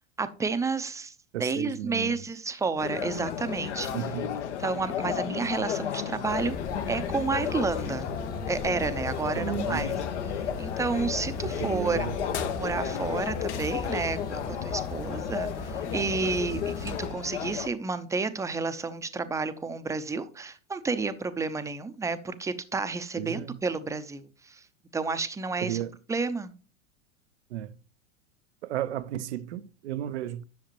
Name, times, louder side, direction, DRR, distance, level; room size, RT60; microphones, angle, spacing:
voice 1, 0.2-1.1 1.4-3.9 4.6-6.6 6.9-8.1 8.5-9.9 10.3-12.1 12.5-24.6 24.9-25.8 26.1-26.5, right 4 dB, 10° right, 0.7 m, -31 dB
voice 2, 1.3-2.2 3.9-4.4 9.4-10.0 11.6-12.1 23.2-23.6 25.6-25.9 27.5-27.7 28.6-30.4, right 11 dB, 65° right, 0.7 m, -33 dB
sound 1, 2.8-17.7, left 9 dB, 65° left, 1.1 m, -33 dB
sound 2, 6.3-17.1, left 3 dB, 25° left, 1.3 m, -37 dB
sound 3, 7.4-15.8, left 4 dB, 85° left, 1.5 m, -46 dB
10.5 x 6.6 x 2.9 m
figure-of-eight pair, 90°, 38 cm